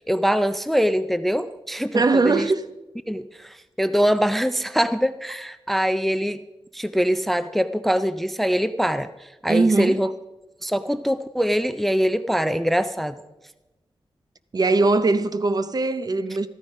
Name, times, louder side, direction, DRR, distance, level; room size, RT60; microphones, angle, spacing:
voice 1, 0.0-2.5 3.1-6.4 6.7-10.1 10.6-13.2, equal, ahead, 0.4 m, -23 dB
voice 2, 1.9-2.6 9.5-10.0 14.5-16.5, right 3 dB, 40° right, 0.6 m, -20 dB
13.5 x 13.5 x 5.3 m
wide cardioid pair, 150°, 10 cm